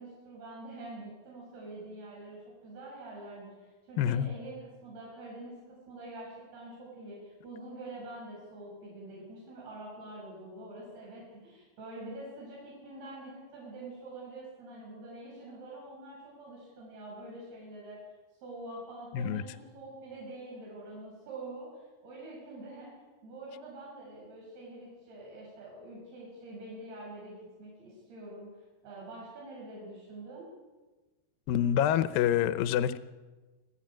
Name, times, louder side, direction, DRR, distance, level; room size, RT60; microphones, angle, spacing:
voice 1, 0.0-18.0 18.4-22.9 23.2-28.5 28.8-30.5, right 2 dB, 70° right, -4 dB, 8.5 m, -45 dB
voice 2, 4.0-4.3 19.1-19.4 31.5-33.0, left 10 dB, 75° left, 11 dB, 2.4 m, -26 dB
27.0 x 13.5 x 9.0 m, 1.2 s
omnidirectional pair, 4.7 m